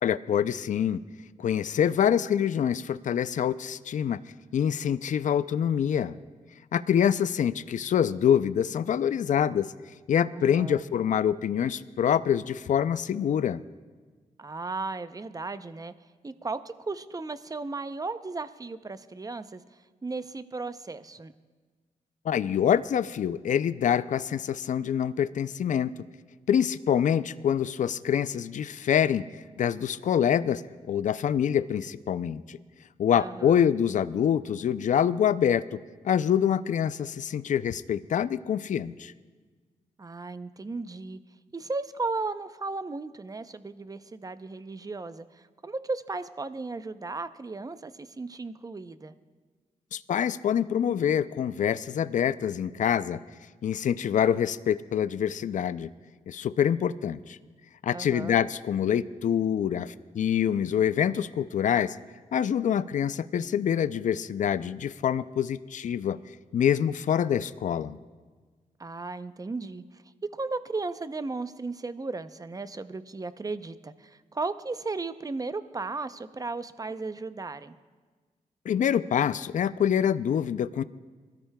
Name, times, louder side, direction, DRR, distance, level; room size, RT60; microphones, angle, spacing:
voice 1, 0.0-1.0 1.4-4.2 4.5-6.2 6.7-9.7 10.1-13.6 22.3-25.9 26.5-29.2 29.6-30.6 30.9-32.6 33.0-35.6 36.0-39.1 49.9-53.2 53.6-55.9 56.3-57.4 57.8-62.0 62.3-66.2 66.5-68.0 78.7-80.8, left 9 dB, 65° left, 15 dB, 0.4 m, -25 dB
voice 2, 10.3-10.9 14.4-15.9 16.2-19.6 20.0-21.3 33.2-33.7 40.0-41.2 41.5-49.1 57.9-58.4 68.8-70.0 70.3-77.8, right 3 dB, 25° right, 12 dB, 0.6 m, -35 dB
22.0 x 13.5 x 2.3 m, 1.4 s
cardioid pair, 65°, 14 cm